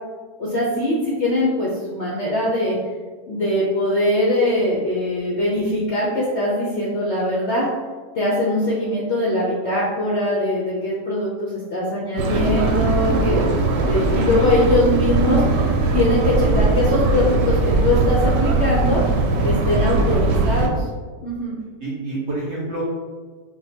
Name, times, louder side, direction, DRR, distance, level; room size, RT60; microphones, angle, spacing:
voice 1, 0.4-2.8 3.3-7.7 8.1-13.5 13.8-15.7 15.9-19.0 19.4-20.9 21.2-21.5, left 1 dB, 60° left, -5 dB, 0.7 m, -21 dB
sound 1, 12.2-20.7, right 3 dB, 80° right, 1.2 m, -20 dB
voice 2, 19.8-20.4 21.8-22.8, right 2 dB, 55° right, -6 dB, 0.8 m, -29 dB
4.4 x 2.2 x 4.2 m, 1.5 s
omnidirectional pair, 1.9 m